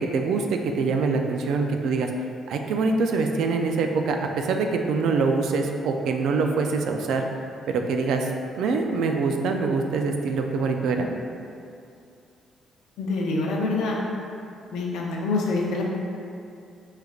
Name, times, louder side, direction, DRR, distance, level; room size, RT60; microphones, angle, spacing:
voice 1, 0.0-2.1 2.5-7.3 7.7-8.3 8.5-11.1, right 4 dB, 80° right, 3 dB, 0.3 m, -24 dB
voice 2, 13.0-14.0 14.7-15.8, left 3 dB, 85° left, -2 dB, 0.6 m, -26 dB
4.9 x 3.2 x 2.3 m, 2.5 s
cardioid pair, 90°, 0 cm